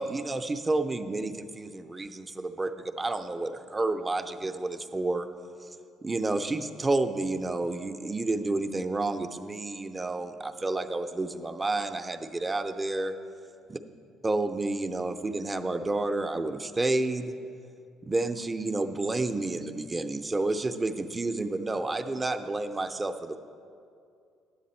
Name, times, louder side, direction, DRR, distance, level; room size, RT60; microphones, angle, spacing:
voice 1, 0.0-5.3 5.6-5.8 6.0-13.2 13.7-13.8 14.2-17.3 18.0-23.4, right 2 dB, 20° right, 8 dB, 0.5 m, -30 dB
10.0 x 7.5 x 4.3 m, 2.4 s
cardioid pair, 105°, 0 cm